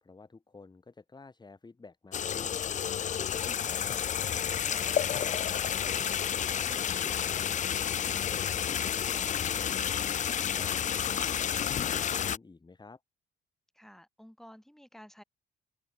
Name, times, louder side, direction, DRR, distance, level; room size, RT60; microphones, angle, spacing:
voice 1, 0.0-2.7 3.2-4.2 4.5-6.2 6.6-9.8 10.2-13.0, left 3 dB, 20° left, 1.9 m, -51 dB
sound 1, 2.1-12.4, left 9 dB, 40° left, 0.4 m, -30 dB
voice 2, 13.7-15.2, equal, ahead, 5.5 m, -52 dB
cardioid pair, 90°, 20 cm